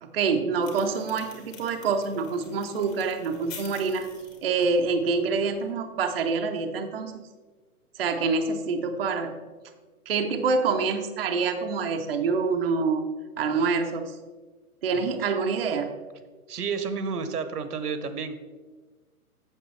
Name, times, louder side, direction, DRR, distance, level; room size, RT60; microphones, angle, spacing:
voice 1, 0.0-4.1 4.4-7.2 7.9-9.4 10.1-13.0 13.4-14.2 14.8-15.9, right 4 dB, 40° right, 4 dB, 0.5 m, -26 dB
sound 1, 0.6-5.7, left 5 dB, 55° left, 2.3 m, -47 dB
voice 2, 16.5-18.4, right 5 dB, 80° right, 11 dB, 1.0 m, -30 dB
7.9 x 7.1 x 3.2 m, 1.3 s
hypercardioid pair, 155°, 45 cm